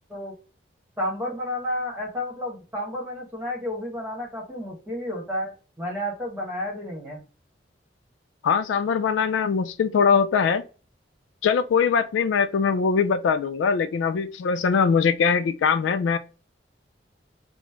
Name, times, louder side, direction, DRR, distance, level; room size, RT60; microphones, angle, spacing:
voice 1, 1.0-7.2, left 1 dB, 10° right, 1.1 m, -31 dB
voice 2, 8.4-10.6 11.4-16.2, left 6 dB, 85° left, 0.3 m, -22 dB
3.0 x 2.0 x 3.4 m
head